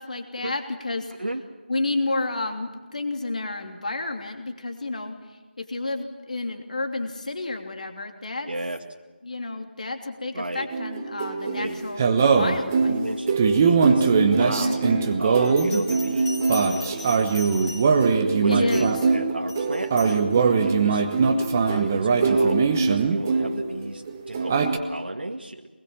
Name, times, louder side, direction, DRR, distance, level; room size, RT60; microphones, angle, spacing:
voice 1, 0.0-1.1 1.7-5.2 5.6-8.5 9.2-12.0 12.3-13.0 14.6-15.1 18.5-19.1, left 2 dB, 45° left, 4 dB, 3.0 m, -30 dB
voice 2, 8.5-8.8 10.3-10.7 11.4-11.9 12.9-14.8 15.2-17.9 18.4-25.7, right 2 dB, 65° right, 1 dB, 2.0 m, -33 dB
sound 1, 10.7-23.8 24.1-24.8, right 5 dB, 15° right, 1.0 m, -21 dB
Bell, 15.4-18.2 18.7-19.0 19.5-20.2, left 3 dB, 5° left, 2.0 m, -40 dB
23.5 x 21.0 x 7.4 m, 1.2 s
figure-of-eight pair, 170°, 6 cm